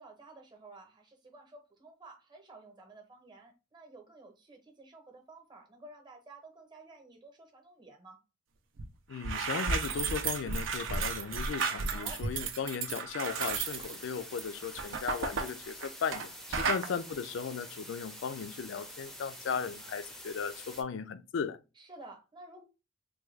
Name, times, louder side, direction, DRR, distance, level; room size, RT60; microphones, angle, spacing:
voice 1, 0.0-8.2 11.9-12.2 16.6-17.0 21.7-22.6, right 2 dB, 25° right, 0.8 m, -52 dB
sound 1, 8.8-8.9 9.1-16.3 16.5-16.9, right 5 dB, 70° right, 0.5 m, -33 dB
voice 2, 9.1-21.6, left 6 dB, 70° left, 0.4 m, -36 dB
sound 2, 13.3-20.8, equal, ahead, 0.5 m, -47 dB
3.4 x 2.2 x 3.2 m
head